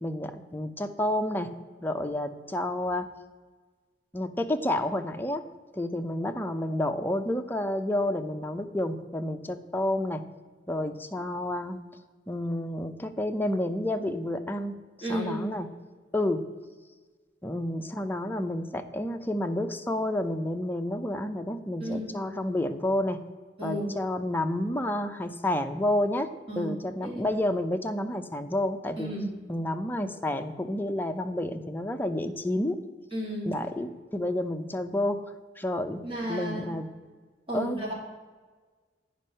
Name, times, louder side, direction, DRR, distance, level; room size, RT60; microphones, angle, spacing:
voice 1, 0.0-1.5 1.8-3.1 4.1-5.4 5.7-10.2 10.7-11.8 12.3-15.7 16.1-16.4 17.4-23.2 23.6-26.3 26.6-29.1 29.5-32.8 33.5-35.2 35.6-36.0 36.3-36.9 37.5-37.8, left 1 dB, 10° left, 6 dB, 0.5 m, -30 dB
voice 2, 15.0-15.5 21.8-22.1 23.6-23.8 26.5-26.7 27.0-27.2 29.0-29.3 33.1-33.5 36.0-36.7 37.5-37.9, equal, 30° right, -4 dB, 2.7 m, -32 dB
9.2 x 5.3 x 5.5 m, 1.4 s
head